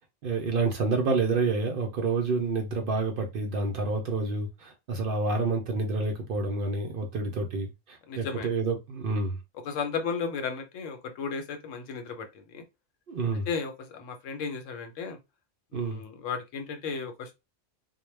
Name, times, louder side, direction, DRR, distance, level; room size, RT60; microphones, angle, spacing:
voice 1, 0.2-9.4 13.1-13.5 15.7-16.0, right 3 dB, 60° right, 0.6 m, -28 dB
voice 2, 8.1-8.5 9.6-12.6 13.5-15.2 15.7-17.3, left 5 dB, 85° left, 1.0 m, -34 dB
2.2 x 2.1 x 3.1 m
omnidirectional pair, 1.3 m